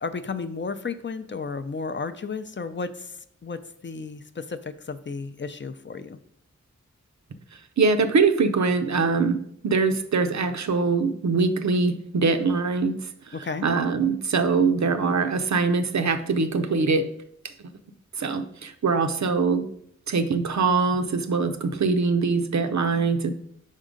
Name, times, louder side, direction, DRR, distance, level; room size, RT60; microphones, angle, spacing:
voice 1, 0.0-2.9 3.4-4.6 4.9-6.2 13.3-13.7, left 4 dB, 40° left, 10 dB, 0.4 m, -33 dB
voice 2, 7.8-9.4 9.6-12.9 13.4-17.1 18.2-19.7 20.1-23.3, right 4 dB, 65° right, 8 dB, 0.6 m, -23 dB
5.4 x 3.7 x 5.1 m, 0.69 s
wide cardioid pair, 60°, 30 cm